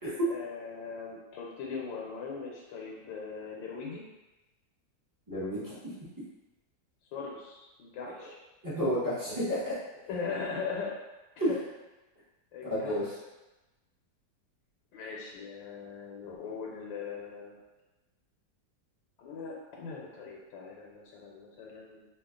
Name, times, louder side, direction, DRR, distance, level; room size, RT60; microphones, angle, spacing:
voice 1, 0.2-4.0 7.1-8.4 10.1-11.0 11.5-11.6 12.5-12.9 14.9-17.6 19.2-22.0, left 5 dB, 85° left, -2 dB, 1.4 m, -40 dB
voice 2, 5.3-5.7 8.6-9.7 11.4-11.5 12.7-13.1, equal, 20° right, -11 dB, 0.6 m, -30 dB
3.1 x 2.4 x 3.6 m, 1.1 s
omnidirectional pair, 2.0 m